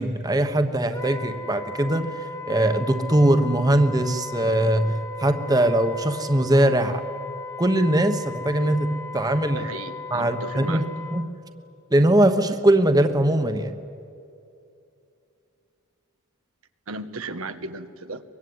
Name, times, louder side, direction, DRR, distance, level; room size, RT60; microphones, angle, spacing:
voice 1, 0.0-2.1 2.5-7.0 7.6-9.6 10.1-10.9 11.1-11.3 11.9-13.7, right 1 dB, 20° right, 8 dB, 1.2 m, -21 dB
Wind instrument woodwind instrument, 0.9-11.3, left 3 dB, 15° left, 1.2 m, -37 dB
voice 2, 9.5-10.9 16.9-18.2, right 3 dB, 90° right, 9 dB, 1.3 m, -35 dB
23.5 x 22.5 x 9.6 m, 2.5 s
head